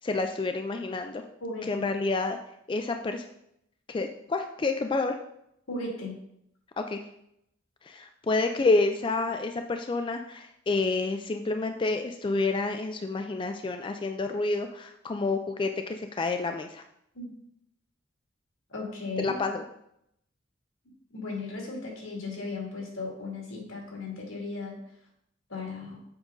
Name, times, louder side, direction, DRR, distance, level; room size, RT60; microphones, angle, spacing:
voice 1, 0.0-1.2 1.7-2.4 2.7-3.3 3.9-5.2 6.8-7.0 7.8-16.8 19.2-19.6, left 3 dB, 25° left, 6 dB, 0.3 m, -29 dB
voice 2, 1.4-1.8 5.7-6.2 17.1-17.4 18.7-19.4 21.1-24.8 25.5-26.1, left 3 dB, 85° left, -2 dB, 2.3 m, -36 dB
7.2 x 5.1 x 3.8 m, 0.77 s
head